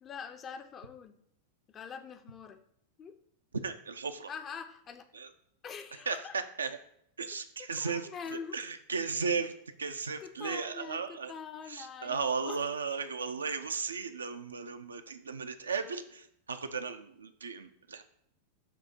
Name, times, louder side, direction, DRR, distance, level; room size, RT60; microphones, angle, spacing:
voice 1, 0.0-1.2 1.7-2.6 3.0-3.2 4.3-5.1 5.6-6.4 7.3-8.6 10.2-12.6, left 6 dB, 25° left, 8 dB, 0.5 m, -44 dB
voice 2, 3.6-4.3 5.1-5.3 6.1-6.2 6.6-6.8 7.2-9.5 9.8-11.3 11.7-18.0, right 5 dB, 75° right, 8 dB, 0.4 m, -35 dB
6.7 x 2.7 x 5.6 m, 0.70 s
figure-of-eight pair, 90°, 0 cm